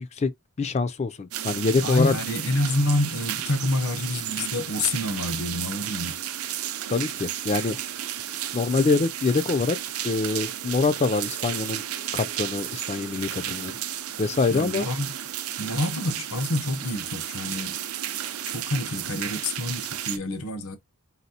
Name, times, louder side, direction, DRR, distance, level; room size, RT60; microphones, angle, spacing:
voice 1, 0.6-2.1 6.9-7.8 8.5-9.8 10.0-11.8 12.1-13.7 14.2-14.9, left 4 dB, 30° left, 0.3 m, -24 dB
sound 1, 1.3-20.2, right 11 dB, 70° right, 0.6 m, -33 dB
voice 2, 1.8-6.2 13.4-13.7 14.5-15.1 15.6-17.8 18.5-20.8, left 1 dB, 70° left, 0.8 m, -28 dB
4.1 x 3.9 x 2.8 m
head